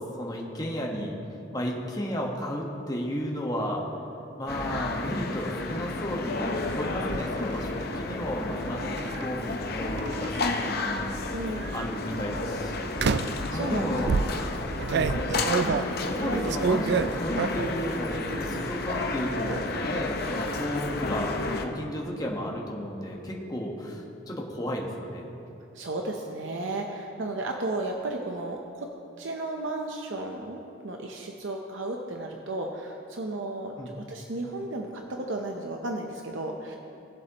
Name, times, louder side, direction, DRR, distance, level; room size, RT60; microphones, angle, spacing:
voice 1, 0.2-1.2 1.5-3.8 4.4-11.2 11.7-12.9 13.5-14.2 14.9-15.5 16.0-25.3 33.8-33.9, equal, 20° left, -2 dB, 1.3 m, -33 dB
sound 1, 4.5-21.6, left 2 dB, 55° left, 0.8 m, -31 dB
sound 2, 6.7-7.2 9.0-9.2 10.0-10.8 11.6-11.9 13.0-13.5 14.1-17.8 18.2-18.7 19.0-19.6, right 5 dB, 60° right, 0.4 m, -29 dB
voice 2, 11.3-11.8 13.2-13.8 15.6-16.5 25.7-28.9 29.2-36.8, right 2 dB, 85° right, 2 dB, 0.8 m, -34 dB
19.5 x 7.5 x 3.0 m, 2.8 s
head